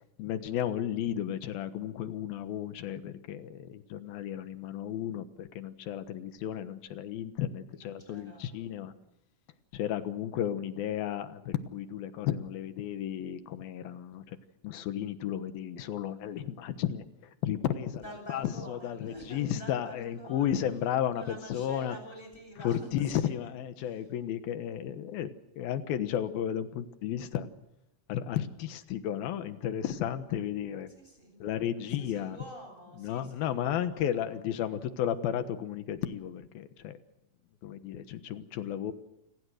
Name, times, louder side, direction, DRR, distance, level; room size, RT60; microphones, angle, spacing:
voice 1, 0.2-8.9 9.7-14.4 14.6-18.0 18.3-22.0 22.6-27.5 28.1-30.9 31.4-32.4 33.0-37.0 37.6-38.9, left 10 dB, 90° left, 10 dB, 3.1 m, -33 dB
voice 2, 7.7-9.1 18.0-20.6 21.1-23.3 23.8-24.1 30.9-31.4 31.9-34.2, equal, 15° left, 3 dB, 8.0 m, -48 dB
29.0 x 19.5 x 6.5 m, 0.85 s
omnidirectional pair, 4.1 m